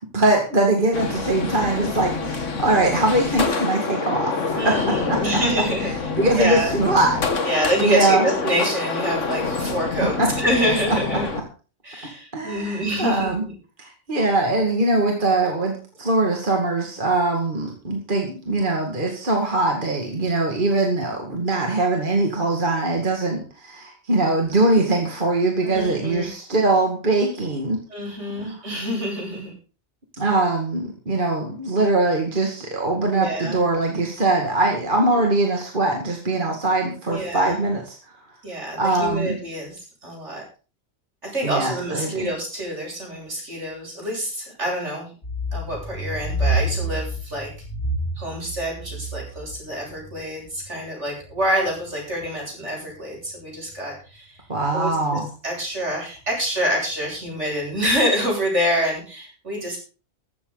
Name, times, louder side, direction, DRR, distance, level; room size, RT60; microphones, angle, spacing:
voice 1, 0.0-5.2 6.2-7.5 7.8-8.3 9.6-9.7 10.2-10.3 12.0-13.4 13.8-27.8 28.4-28.6 30.2-38.2 38.8-39.4 41.4-42.3 54.5-55.3, right 2 dB, 45° right, 1 dB, 2.4 m, -22 dB
sound 1, 0.9-11.4, left 4 dB, 85° left, 2.0 m, -27 dB
voice 2, 4.5-5.9 6.3-6.8 7.4-11.3 11.8-13.6 25.6-26.3 27.9-29.5 33.0-33.6 37.1-37.5 38.4-40.4 41.2-45.1 45.5-47.5 48.2-54.4 54.7-59.8, equal, 75° right, -1 dB, 7.8 m, -26 dB
sound 2, 45.2-52.4 52.9-54.1 54.6-54.7 55.1-55.2 55.5-55.6 55.9-56.0 56.3-56.5 56.8-57.9, right 1 dB, 60° left, 4.6 m, -29 dB
14.5 x 13.5 x 4.1 m, 0.37 s
omnidirectional pair, 1.2 m